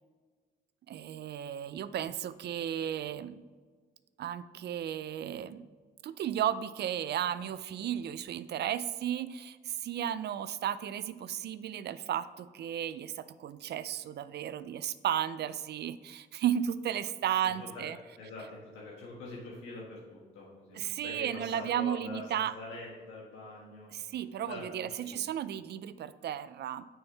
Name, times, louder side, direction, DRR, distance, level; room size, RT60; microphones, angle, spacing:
voice 1, 0.9-3.4 4.2-5.7 6.0-18.0 20.8-22.5 23.9-26.8, right 10 dB, 55° right, 14 dB, 0.4 m, -34 dB
voice 2, 17.4-17.8 18.2-23.9 24.4-25.3, left 2 dB, 85° left, -5 dB, 1.6 m, -44 dB
6.4 x 4.6 x 5.6 m, 1.5 s
cardioid pair, 90°, 20 cm